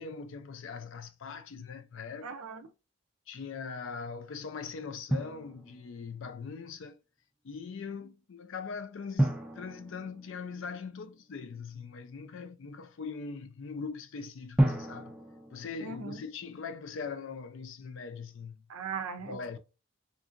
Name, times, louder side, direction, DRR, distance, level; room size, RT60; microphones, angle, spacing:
voice 1, 0.0-2.3 3.3-7.0 7.4-15.1 15.5-18.6 19.2-19.6, left 5 dB, 60° left, 0.4 m, -41 dB
voice 2, 2.2-2.7 15.8-16.3 18.7-19.6, right 5 dB, 85° right, 0.6 m, -39 dB
Drum, 5.1-6.2 9.2-11.0 14.6-16.6, right 1 dB, 5° right, 0.4 m, -32 dB
2.8 x 2.6 x 2.5 m
head